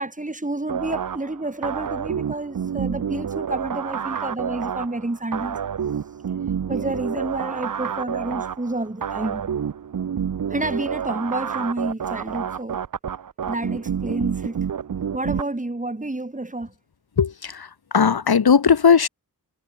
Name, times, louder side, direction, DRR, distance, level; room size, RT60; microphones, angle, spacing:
voice 1, 0.0-5.6 6.7-9.5 10.5-12.8 13.4-14.6 15.1-16.7, right 2 dB, 20° right, 2.8 m, -29 dB
sound 1, 0.7-15.4, right 8 dB, 60° right, 0.7 m, -29 dB
voice 2, 17.2-19.1, left 6 dB, 85° left, 1.9 m, -18 dB
cardioid pair, 50°, 37 cm